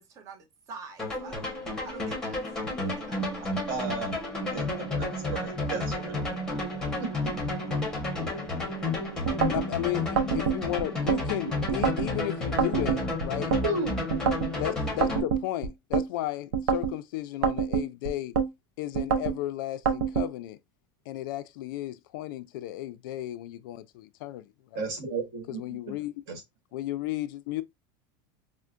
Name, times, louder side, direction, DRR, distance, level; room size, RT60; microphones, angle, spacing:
voice 1, 0.1-2.4 2.8-3.5, right 4 dB, 30° right, 0.7 m, -46 dB
sound 1, 1.0-15.2, left 2 dB, 5° left, 0.9 m, -31 dB
voice 2, 3.7-4.1 4.5-4.6 5.0-6.1 7.0-7.1 13.6-14.0 24.7-25.9 26.3-26.4, right 3 dB, 50° right, 1.5 m, -33 dB
sound 2, 9.2-9.7 10.2-11.2 11.7-12.1 12.6-13.6 14.1-14.5 15.0-16.1 16.5-16.9 17.4-18.5 18.9-19.4 19.9-20.3, right 6 dB, 90° right, 0.6 m, -26 dB
voice 3, 9.5-13.5 14.6-18.3 18.8-20.6 21.1-24.8 25.5-26.1 26.7-27.6, left 14 dB, 70° left, 0.4 m, -34 dB
4.4 x 2.1 x 2.4 m
supercardioid pair, 165°, 12 cm